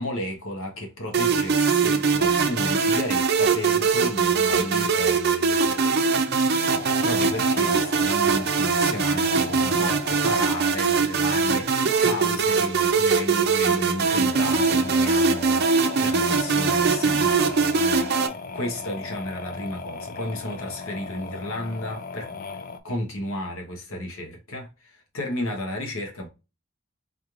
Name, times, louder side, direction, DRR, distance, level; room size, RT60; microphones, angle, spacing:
voice 1, 0.0-5.9 6.7-22.3 22.8-26.3, left 1 dB, 85° left, 1.1 m, -33 dB
sound 1, 1.1-18.3, right 5 dB, 50° right, 0.5 m, -22 dB
sound 2, 6.7-11.1 14.0-22.8, left 4 dB, 45° left, 0.4 m, -37 dB
4.3 x 3.1 x 2.4 m
head